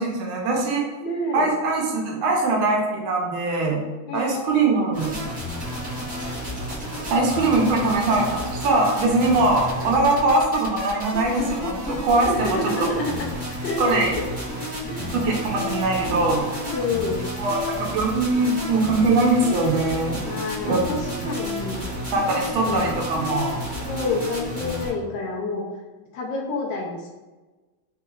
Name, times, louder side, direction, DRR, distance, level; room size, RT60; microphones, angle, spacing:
voice 1, 0.0-0.9 1.3-3.8 4.1-5.1 7.1-12.6 13.8-14.1 15.1-16.4 17.4-20.2 20.6-21.3 22.1-23.6, right 2 dB, 85° right, -1 dB, 1.6 m, -22 dB
voice 2, 1.0-1.5 4.1-4.7 7.2-8.0 12.3-13.3 13.6-14.0 14.6-15.1 16.6-17.3 20.2-21.9 22.3-22.9 23.8-25.6 26.1-27.1, left 2 dB, 75° left, -1 dB, 1.1 m, -29 dB
sound 1, 4.9-24.9, left 1 dB, 5° right, 0.7 m, -31 dB
4.1 x 2.9 x 2.4 m, 1.2 s
omnidirectional pair, 2.2 m